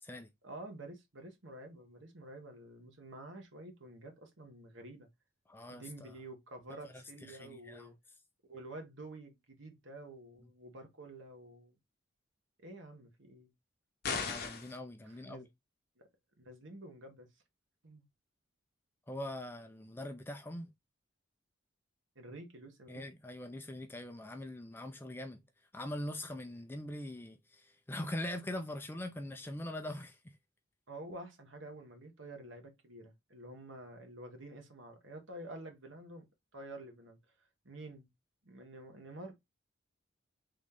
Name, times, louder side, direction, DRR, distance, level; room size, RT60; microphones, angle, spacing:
voice 1, 0.4-5.1 5.7-7.9 8.4-11.8 12.6-13.5 15.0-15.5 16.0-16.1 16.4-17.3 17.8-18.0 22.1-23.0 30.9-36.3 36.5-38.1 38.4-39.3, right 1 dB, 70° right, 1.4 m, -49 dB
voice 2, 5.5-6.1 6.9-7.0 7.3-7.9 14.1-15.5 19.1-20.7 22.9-25.4 25.7-30.2, left 1 dB, 10° left, 0.5 m, -42 dB
sound 1, 14.0-14.8, left 5 dB, 50° left, 0.8 m, -36 dB
3.8 x 3.1 x 3.6 m
head